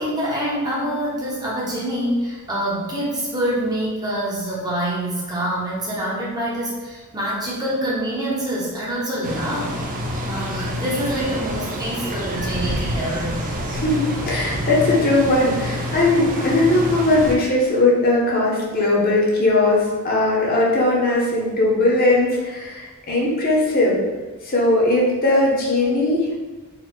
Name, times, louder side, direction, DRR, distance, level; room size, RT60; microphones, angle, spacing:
voice 1, 0.0-9.8 10.2-13.4, right 1 dB, 20° right, -5 dB, 0.9 m, -26 dB
sound 1, 9.2-17.4, equal, 35° right, 0.5 m, -27 dB
voice 2, 13.7-19.8 20.0-24.1 24.5-26.4, left 2 dB, 40° left, -4 dB, 0.9 m, -19 dB
4.1 x 2.4 x 4.4 m, 1.3 s
head